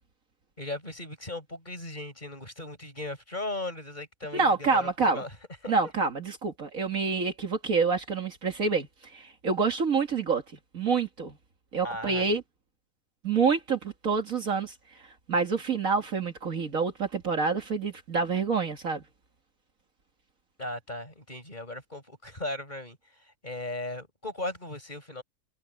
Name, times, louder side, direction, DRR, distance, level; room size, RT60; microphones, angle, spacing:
voice 1, 0.6-5.3 5.6-5.7 11.8-12.3 20.6-23.0 23.4-25.2, left 2 dB, 25° left, 5.8 m, -37 dB
voice 2, 4.3-5.2 5.7-10.4 10.7-11.4 11.7-12.4 13.2-15.0 15.3-19.0, right 4 dB, 55° right, 2.2 m, -27 dB
omnidirectional pair, 1.7 m